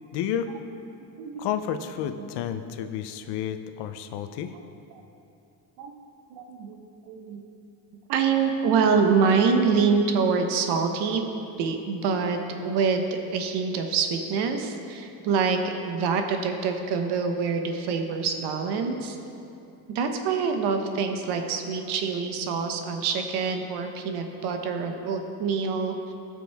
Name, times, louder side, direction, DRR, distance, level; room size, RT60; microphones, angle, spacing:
voice 1, 0.1-0.5 1.4-4.5, left 9 dB, 90° left, 9 dB, 0.7 m, -31 dB
voice 2, 6.3-6.8 7.1-7.4 8.1-11.2 11.6-19.2 19.9-26.1, right 5 dB, 80° right, 5 dB, 1.1 m, -25 dB
17.5 x 6.1 x 3.5 m, 2.7 s
cardioid pair, 145°, 39 cm